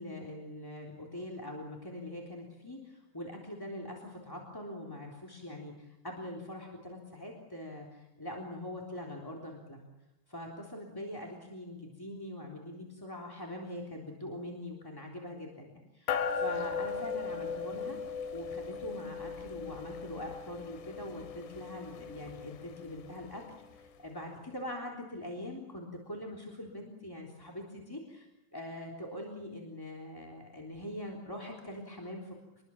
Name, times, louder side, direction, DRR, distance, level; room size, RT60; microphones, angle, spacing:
voice 1, 0.0-9.8 10.3-18.0 18.3-23.4 23.7-28.3 28.5-32.6, left 1 dB, 5° left, -1 dB, 2.4 m, -43 dB
sound 1, 16.1-23.8, left 6 dB, 75° left, 4.2 m, -38 dB
27.5 x 22.0 x 7.3 m, 0.98 s
omnidirectional pair, 5.8 m